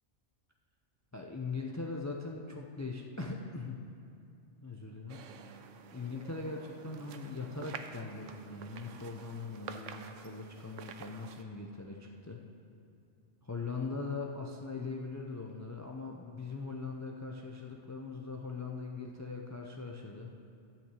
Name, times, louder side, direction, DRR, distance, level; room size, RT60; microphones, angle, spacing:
voice 1, 1.1-3.8 4.6-12.4 13.4-20.3, left 3 dB, 20° left, 1 dB, 0.5 m, -41 dB
sound 1, 5.1-11.4, right 7 dB, 85° right, 1.0 m, -49 dB
12.5 x 6.0 x 8.2 m, 2.5 s
omnidirectional pair, 1.2 m